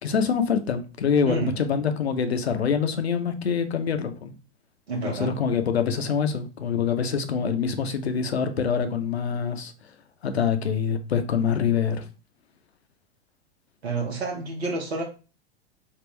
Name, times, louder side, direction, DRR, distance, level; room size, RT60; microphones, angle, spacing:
voice 1, 0.0-4.3 5.0-9.7 10.2-12.0, left 6 dB, 80° left, 0.6 m, -25 dB
voice 2, 4.9-5.3 13.8-15.0, right 3 dB, 80° right, 0.9 m, -29 dB
3.6 x 2.4 x 3.0 m
figure-of-eight pair, 100°, 31 cm